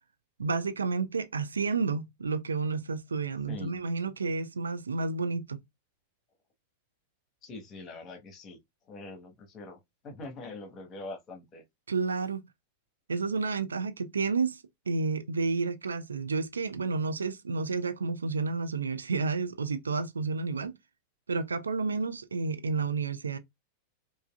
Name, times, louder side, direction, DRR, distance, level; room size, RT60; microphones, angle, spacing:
voice 1, 0.4-5.6 11.9-12.4 13.1-14.6 14.9-20.7 21.3-23.4, right 4 dB, 75° right, 0.5 m, -30 dB
voice 2, 3.5-3.8 7.4-8.6 8.9-11.6, left 2 dB, 30° left, 1.3 m, -43 dB
4.6 x 2.6 x 2.4 m
figure-of-eight pair, 90°, 0 cm